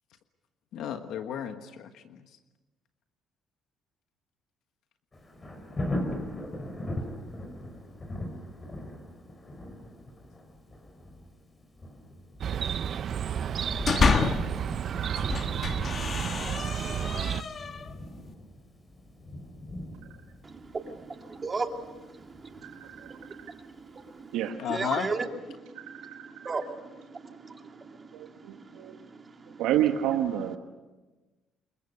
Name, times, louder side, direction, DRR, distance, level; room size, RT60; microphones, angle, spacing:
voice 1, 0.7-2.0 24.6-25.1, left 9 dB, 75° left, 1.4 m, -33 dB
Thunder, 5.1-23.9 24.4-24.5, left 1 dB, 25° left, 4.7 m, -41 dB
Chirp tweet, 12.4-17.4, right 8 dB, 50° right, 0.7 m, -31 dB
sound 1, 13.5-14.6 15.1-17.9, left 4 dB, 40° left, 1.5 m, -29 dB
voice 2, 20.4-29.7, right 4 dB, 30° right, 2.5 m, -38 dB
voice 3, 25.7-26.3 28.1-29.0 29.6-30.6, right 11 dB, 90° right, 1.4 m, -29 dB
28.0 x 22.5 x 6.7 m
cardioid pair, 105°, 0 cm